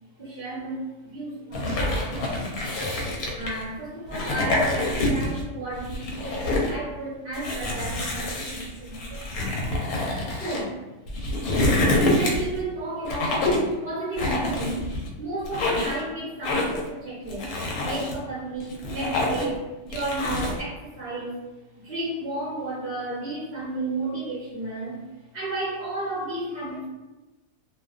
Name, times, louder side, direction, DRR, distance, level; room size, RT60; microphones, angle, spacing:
voice 1, 0.2-2.7 3.3-9.6 10.3-10.8 11.9-14.9 15.2-21.4 21.8-26.9, right 2 dB, 45° right, -8 dB, 0.7 m, -33 dB
sound 1, 1.5-3.6 4.1-5.4 5.8-6.7 7.3-10.6 11.1-12.6 13.1-13.7 14.2-15.1 15.4-16.0 16.4-16.9 17.3-18.1 18.6-19.6 19.9-20.6, left 1 dB, 75° left, 1.0 m, -26 dB
2.5 x 2.2 x 2.3 m, 1.1 s
omnidirectional pair, 1.6 m